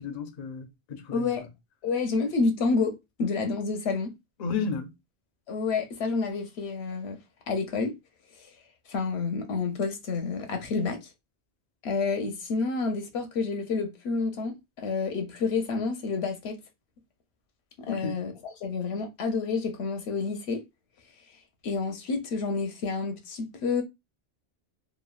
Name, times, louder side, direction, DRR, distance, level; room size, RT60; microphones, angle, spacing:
voice 1, 0.0-1.3 4.4-4.9 17.9-18.2, left 5 dB, 50° left, 0.5 m, -33 dB
voice 2, 1.1-1.4 1.8-4.1 5.5-7.2 7.5-7.9 8.9-11.1 11.8-14.5 14.8-16.6 17.8-18.3 18.6-20.6 21.6-23.8, left 4 dB, 85° left, 0.9 m, -29 dB
3.0 x 2.2 x 2.3 m
omnidirectional pair, 1.1 m